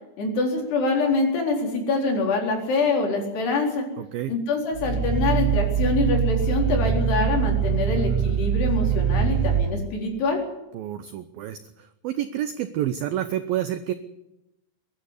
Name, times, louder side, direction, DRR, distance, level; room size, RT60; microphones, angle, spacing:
voice 1, 0.2-3.9 4.3-10.4, left 3 dB, 60° left, 1 dB, 6.1 m, -25 dB
voice 2, 4.0-4.3 10.7-11.6 12.0-13.9, right 11 dB, 80° right, 10 dB, 2.1 m, -28 dB
Growling, 4.7-9.7, right 8 dB, 40° right, 4.0 m, -23 dB
22.5 x 12.0 x 9.8 m, 0.91 s
omnidirectional pair, 5.4 m